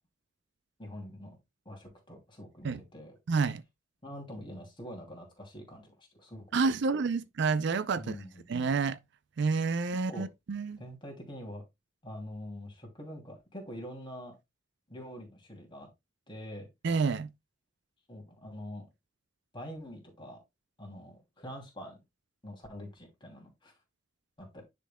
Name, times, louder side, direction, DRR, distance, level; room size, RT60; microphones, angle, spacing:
voice 1, 0.8-1.4 1.6-3.2 4.0-6.6 7.9-8.5 10.1-10.3 10.8-11.6 12.0-14.4 14.9-15.9 16.3-16.7 18.1-18.9 19.5-20.4 20.8-21.9 22.4-23.7 24.4-24.6, equal, 25° left, 2.7 m, -45 dB
voice 2, 3.3-3.6 6.5-8.1 8.5-9.0 9.4-10.8 16.8-17.3, right 4 dB, 60° right, 0.4 m, -29 dB
10.0 x 5.3 x 2.2 m
head